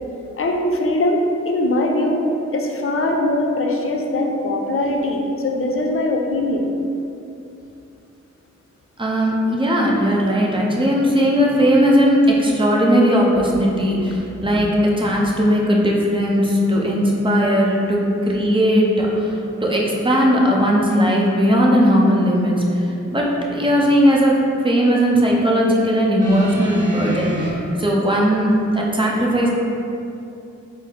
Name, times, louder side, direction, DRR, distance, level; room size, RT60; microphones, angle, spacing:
voice 1, 0.4-2.2 2.5-6.7 14.1-14.2 14.5-14.6, left 1 dB, 45° left, 2 dB, 0.6 m, -21 dB
voice 2, 9.0-24.4 24.6-29.5, equal, 15° right, -2 dB, 0.7 m, -18 dB
sound 1, 26.2-27.5 28.5-28.6, right 1 dB, 25° left, 1.2 m, -27 dB
4.1 x 2.1 x 3.7 m, 2.7 s
cardioid pair, 40°, 30 cm